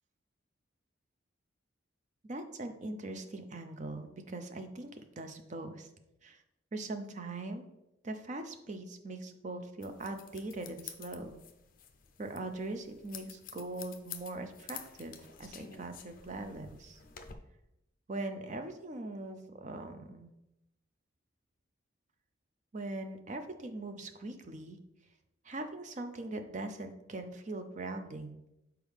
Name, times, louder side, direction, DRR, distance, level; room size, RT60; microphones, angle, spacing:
voice 1, 2.2-5.9 6.2-6.4 6.7-7.7 8.0-11.4 12.2-17.0 18.1-20.3 22.7-24.8 25.4-28.4, right 2 dB, 35° right, 7 dB, 0.5 m, -41 dB
sound 1, 9.8-17.3, left 8 dB, 45° left, 0.5 m, -50 dB
6.3 x 4.6 x 3.5 m, 0.89 s
head